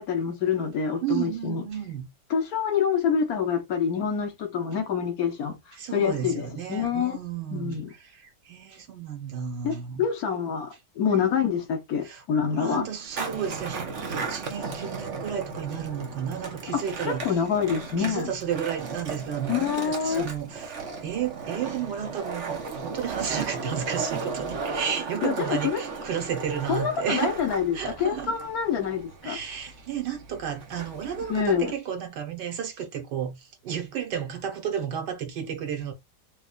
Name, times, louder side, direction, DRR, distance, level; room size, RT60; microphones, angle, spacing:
voice 1, 0.0-1.6 2.3-5.6 5.9-7.2 7.5-7.9 9.6-12.8 16.7-18.3 19.5-20.2 25.2-25.8 26.7-29.4 31.3-31.7, left 7 dB, 65° left, 1.3 m, -26 dB
voice 2, 1.0-2.1 5.7-10.0 12.0-12.2 12.5-17.4 18.0-27.3 27.7-28.4 29.2-35.9, right 8 dB, 85° right, 1.7 m, -32 dB
Skateboard, 13.0-31.7, right 4 dB, 50° right, 1.1 m, -36 dB
4.1 x 3.1 x 2.4 m
omnidirectional pair, 1.8 m